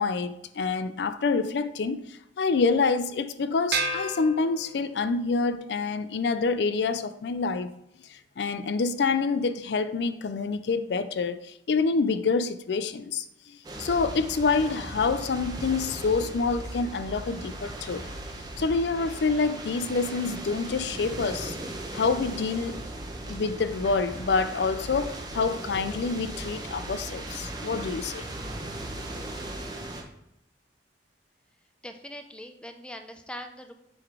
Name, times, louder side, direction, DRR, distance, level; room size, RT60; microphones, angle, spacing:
voice 1, 0.0-7.7 8.1-13.2 13.8-18.1 18.6-21.6 21.9-22.8 23.3-28.3, left 4 dB, 65° left, 0.4 m, -27 dB
sound 1, 3.7-5.2, right 3 dB, 60° right, 0.8 m, -31 dB
sound 2, 13.6-30.0, right 1 dB, 20° right, 1.0 m, -38 dB
voice 2, 31.8-33.7, equal, 5° left, 0.5 m, -41 dB
7.7 x 3.9 x 4.8 m
head